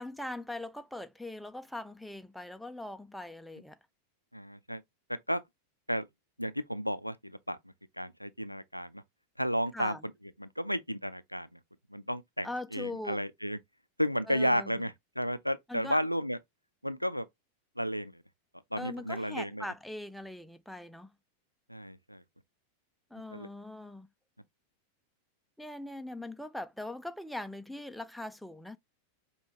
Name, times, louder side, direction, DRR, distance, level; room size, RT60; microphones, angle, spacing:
voice 1, 0.0-3.8 9.7-10.0 12.4-13.3 14.3-14.8 15.7-16.0 18.8-21.1 23.1-24.1 25.6-28.8, left 1 dB, ahead, 0.3 m, -41 dB
voice 2, 4.3-4.8 5.3-5.4 5.9-6.1 6.4-7.6 8.0-9.0 9.4-10.0 10.4-11.6 11.9-13.6 14.0-16.4 16.8-17.3 17.8-18.2 18.7-19.6 21.7-22.2 23.3-23.5, equal, 90° left, 0.3 m, -33 dB
5.2 x 2.2 x 2.8 m
figure-of-eight pair, 90°, 0 cm